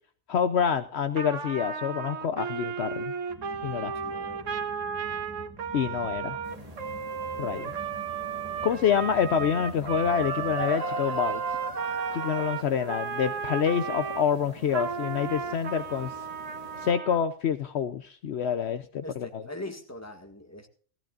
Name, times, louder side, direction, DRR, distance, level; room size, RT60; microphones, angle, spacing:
voice 1, 0.3-3.1 3.6-3.9 5.7-6.4 7.4-7.7 8.6-11.4 12.1-16.1 16.8-19.4, left 7 dB, 65° left, 11 dB, 0.9 m, -27 dB
Trumpet, 1.2-14.2 14.7-17.2, right 6 dB, 90° right, 1.6 m, -34 dB
sound 1, 3.3-10.6, equal, 15° right, 1.3 m, -48 dB
voice 2, 3.8-4.5 7.3-7.9 19.0-20.7, left 1 dB, 15° left, 5 dB, 1.9 m, -42 dB
sound 2, 6.4-16.9, right 1 dB, 30° right, 1.7 m, -41 dB
18.0 x 14.5 x 2.5 m, 0.43 s
omnidirectional pair, 1.3 m